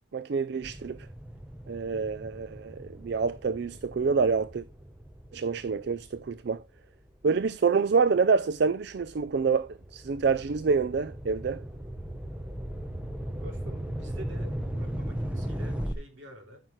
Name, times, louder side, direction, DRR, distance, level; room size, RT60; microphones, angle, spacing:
voice 1, 0.1-1.1 1.7-4.6 5.3-6.6 7.2-11.6, right 5 dB, 55° right, 0.4 m, -27 dB
sound 1, 0.6-7.4 8.0-15.9, right 1 dB, 5° right, 0.8 m, -38 dB
voice 2, 13.4-16.6, equal, 70° right, 3.0 m, -48 dB
13.5 x 6.0 x 3.1 m
head